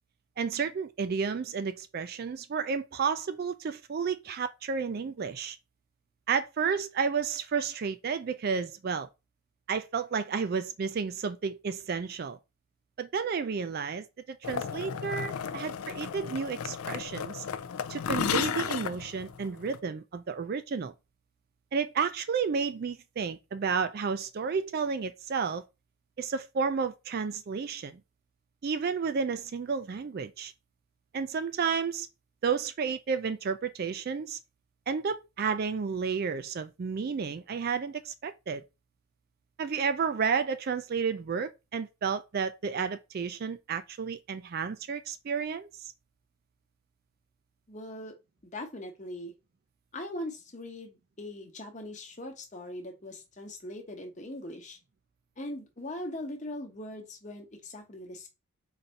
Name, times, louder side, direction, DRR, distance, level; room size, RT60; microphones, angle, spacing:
voice 1, 0.4-5.6 6.3-9.1 9.7-12.4 13.0-17.4 17.9-20.9 21.7-25.6 26.2-28.0 28.6-30.5 31.1-32.1 32.4-34.4 34.9-38.6 39.6-45.7, right 6 dB, 45° right, 0.3 m, -31 dB
sound 1, 14.4-19.8, left 7 dB, 75° left, 0.4 m, -34 dB
voice 2, 47.7-48.1 48.4-49.3 49.9-54.8 55.4-58.3, left 1 dB, 35° left, 0.9 m, -40 dB
4.0 x 2.6 x 4.4 m
head